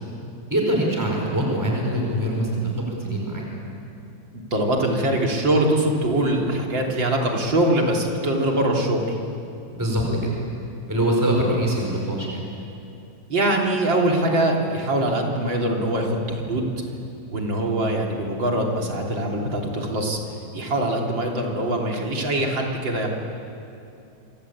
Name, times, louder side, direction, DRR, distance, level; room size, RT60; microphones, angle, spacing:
voice 1, 0.5-3.4 9.7-10.0 10.9-12.4, right 1 dB, 10° right, -1 dB, 5.0 m, -23 dB
voice 2, 4.5-9.2 13.3-16.7 17.3-20.2 20.5-23.1, right 1 dB, 80° right, 0 dB, 4.1 m, -23 dB
27.0 x 24.0 x 8.7 m, 2.6 s
omnidirectional pair, 2.0 m